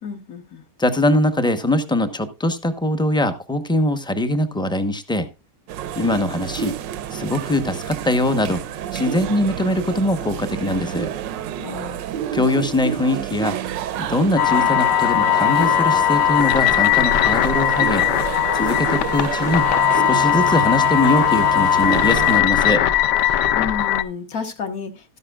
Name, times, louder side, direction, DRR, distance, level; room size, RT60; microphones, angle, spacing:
voice 1, 0.0-0.6 11.6-12.1 23.2-25.2, left 6 dB, 55° left, 6 dB, 1.9 m, -31 dB
voice 2, 0.8-5.3 6.0-6.8 7.1-11.1 12.3-13.6 14.0-18.0 18.5-19.7 19.9-22.8, left 1 dB, 5° left, 9 dB, 0.6 m, -22 dB
sound 1, 5.7-22.4, right 10 dB, 85° right, 1.4 m, -29 dB
sound 2, 14.4-24.0, left 11 dB, 75° left, 1.3 m, -18 dB
13.5 x 10.5 x 2.4 m, 0.27 s
omnidirectional pair, 1.9 m